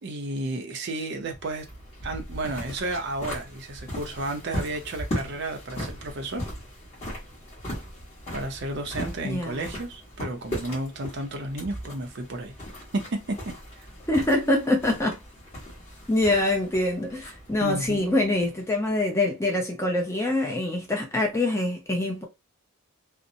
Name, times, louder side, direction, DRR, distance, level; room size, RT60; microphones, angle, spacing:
voice 1, 0.0-1.7 2.0-6.5 8.3-12.5 12.9-13.5 17.6-18.1, right 2 dB, 50° right, 0.5 m, -32 dB
sound 1, 1.2-18.9, equal, 30° left, 1.1 m, -38 dB
voice 2, 9.2-9.7 14.1-15.2 16.1-22.2, left 2 dB, 10° left, 0.5 m, -25 dB
2.6 x 2.0 x 2.6 m
head